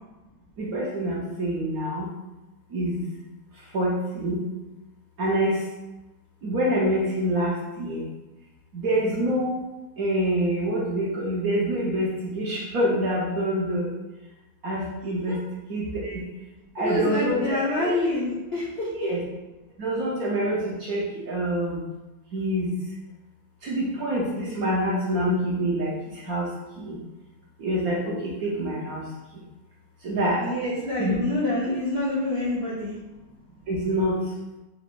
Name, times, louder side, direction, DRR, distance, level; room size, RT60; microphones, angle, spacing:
voice 1, 0.6-2.1 2.7-3.0 3.7-4.4 5.2-5.6 6.4-8.0 8.7-9.5 10.0-13.9 14.6-15.4 15.7-16.2 16.7-17.9 19.0-19.2 19.8-21.8 22.3-22.7 23.6-26.5 26.8-27.0 27.6-29.0 30.0-30.5 31.0-31.2 33.7-34.2, right 1 dB, 60° right, -5 dB, 1.0 m, -26 dB
voice 2, 16.8-19.1 30.4-33.0, left 2 dB, 55° left, -9 dB, 0.7 m, -27 dB
3.9 x 2.5 x 4.5 m, 1.1 s
omnidirectional pair, 2.1 m